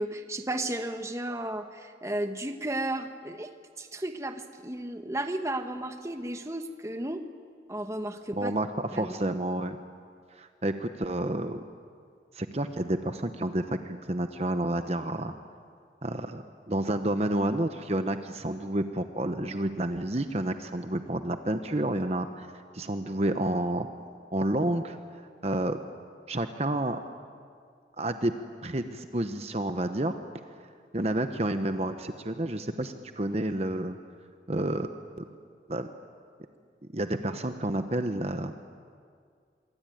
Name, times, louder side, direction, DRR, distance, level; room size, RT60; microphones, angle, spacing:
voice 1, 0.0-3.5 3.8-7.2 7.7-8.5 8.9-9.4, right 1 dB, 15° right, 7 dB, 1.2 m, -34 dB
voice 2, 8.4-8.7 8.9-9.8 10.4-11.7 12.3-15.3 16.0-16.4 16.7-22.5 22.7-23.9 24.3-25.0 25.4-25.8 26.3-27.0 28.0-28.3 28.6-30.2 30.9-34.0 34.5-34.9 35.2-35.3 35.7-35.9 36.9-38.5, right 1 dB, 35° right, 8 dB, 1.0 m, -29 dB
26.5 x 23.0 x 9.3 m, 2.1 s
head